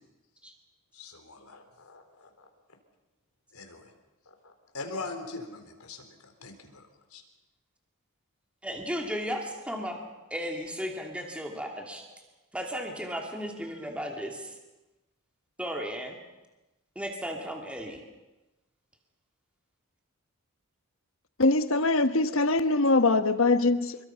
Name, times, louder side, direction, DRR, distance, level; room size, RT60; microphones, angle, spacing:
voice 1, 0.9-2.3 3.5-3.8 4.4-6.8 7.1-7.2, left 3 dB, 85° left, 5 dB, 3.8 m, -42 dB
voice 2, 8.6-10.0 10.3-12.2 12.5-14.5 15.6-16.2 17.0-18.0, equal, 5° right, 1 dB, 2.5 m, -35 dB
voice 3, 21.4-24.0, left 3 dB, 65° left, 11 dB, 1.2 m, -23 dB
27.5 x 22.5 x 5.8 m, 1.1 s
head